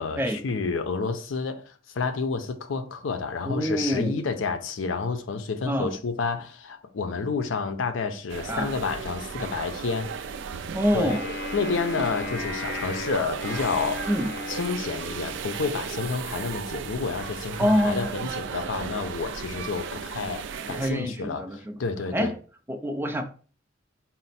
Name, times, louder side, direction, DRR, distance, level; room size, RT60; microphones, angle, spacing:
voice 1, 0.0-10.1 10.9-11.2 11.5-14.1 14.5-21.5 21.8-22.3, left 4 dB, 85° left, 0.5 m, -30 dB
voice 2, 3.5-4.2 5.6-5.9 8.5-8.7 10.7-11.2 14.1-14.3 17.6-18.1 20.7-21.8 22.1-22.3 22.7-23.2, equal, 10° right, 0.5 m, -26 dB
sound 1, 8.3-20.9, right 6 dB, 70° right, 0.4 m, -35 dB
Wind instrument woodwind instrument, 11.1-15.5, left 3 dB, 60° left, 0.9 m, -36 dB
4.2 x 2.1 x 4.1 m
head